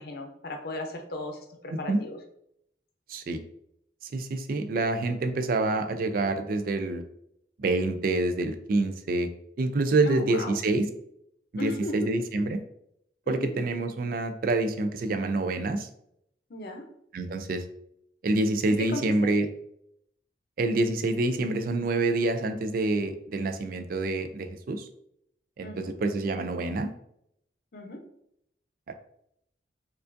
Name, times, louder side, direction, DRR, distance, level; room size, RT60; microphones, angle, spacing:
voice 1, 0.0-2.2 10.0-10.5 11.6-12.1 13.3-13.5 16.5-16.9 18.7-19.0 25.6-25.9 27.7-28.0, left 2 dB, 60° left, 3 dB, 0.7 m, -36 dB
voice 2, 3.1-3.4 4.1-7.0 7.6-9.3 9.6-10.9 11.5-12.6 13.3-15.9 17.1-17.6 18.2-19.5 20.6-24.9 25.6-26.9, right 2 dB, 50° right, 8 dB, 0.4 m, -27 dB
4.5 x 2.5 x 2.5 m, 0.73 s
head